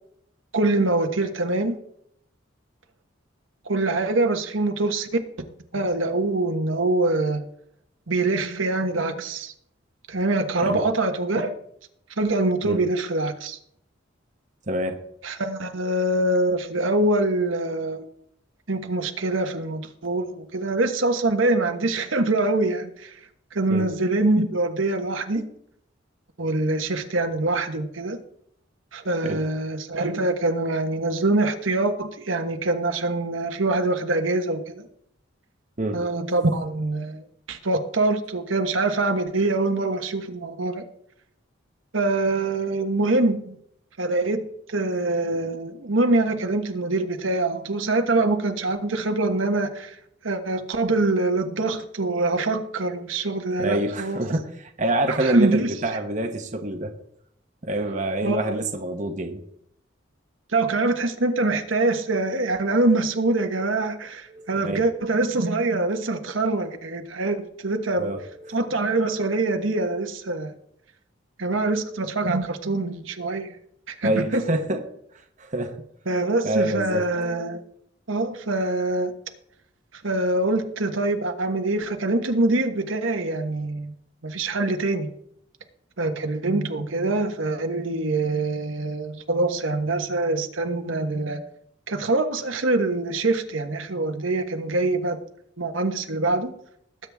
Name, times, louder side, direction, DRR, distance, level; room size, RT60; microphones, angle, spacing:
voice 1, 0.5-1.8 3.6-5.1 5.7-7.4 8.1-9.5 10.1-11.5 12.2-13.6 15.2-18.0 18.7-23.2 23.5-25.5 26.4-28.2 28.9-34.8 35.9-40.8 41.9-43.6 44.0-50.0 50.2-54.2 55.1-55.7 58.2-58.6 60.5-68.1 68.5-70.5 71.4-73.6 73.9-74.4 76.1-77.6 78.1-79.1 79.9-83.9 84.2-85.1 86.0-91.4 91.9-95.2 95.6-96.5, right 2 dB, 80° right, 5 dB, 1.4 m, -24 dB
voice 2, 14.7-15.0 23.7-23.9 29.2-29.4 35.8-36.0 53.6-56.9 57.6-59.4 64.3-64.8 68.0-68.7 74.0-74.8 75.4-75.8 76.4-77.1, right 1 dB, 40° right, 5 dB, 1.1 m, -26 dB
19.5 x 8.9 x 3.6 m, 0.70 s
head